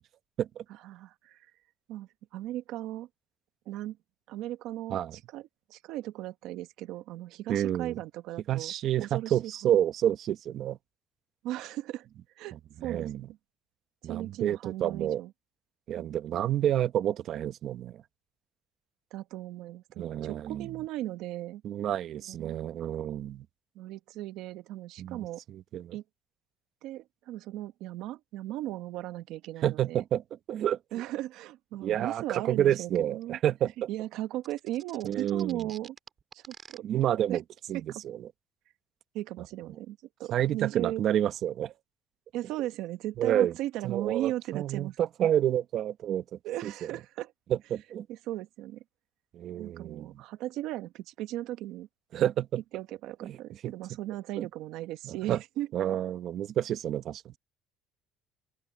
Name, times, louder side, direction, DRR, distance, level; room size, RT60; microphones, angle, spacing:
voice 1, 0.8-1.5 1.9-3.1 3.6-4.0 4.3-8.7 9.0-9.5 11.4-12.1 12.4-12.5 12.8-13.4 14.0-15.3 16.0-16.1 19.1-21.6 22.3-22.6 23.7-25.4 25.9-26.0 26.8-30.0 30.9-33.4 33.9-36.0 36.3-36.8 37.3-37.4 37.7-37.8 39.1-41.0 42.3-45.0 46.4-47.3 48.1-48.8 49.5-51.9 52.7-55.7, right 14 dB, 80° right, 1.3 m, -37 dB
voice 2, 7.5-8.0 8.5-10.8 12.5-13.3 14.0-15.2 15.9-18.0 20.0-20.8 21.6-23.4 25.0-26.0 29.6-30.2 30.5-30.8 31.8-33.9 35.0-35.7 36.8-37.4 37.7-38.3 40.3-41.7 43.2-43.5 43.8-46.9 47.5-48.1 49.3-50.2 52.1-52.6 53.2-53.4 53.6-53.7 54.4-54.5 55.0-55.4 55.7-57.4, right 11 dB, 55° right, 1.1 m, -29 dB
sound 1, 34.4-36.8, right 6 dB, 35° right, 3.6 m, -49 dB
open air
cardioid pair, 125°, 0 cm